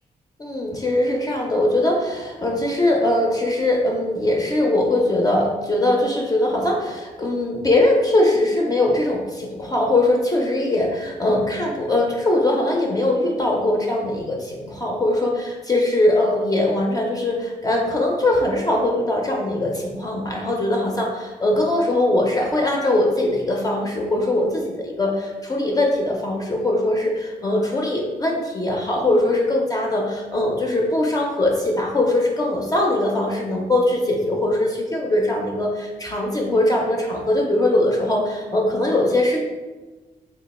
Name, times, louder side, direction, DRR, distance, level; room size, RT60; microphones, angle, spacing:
voice 1, 0.4-39.4, left 1 dB, 25° left, -1 dB, 0.4 m, -21 dB
3.0 x 2.3 x 4.0 m, 1.2 s
wide cardioid pair, 155°, 16 cm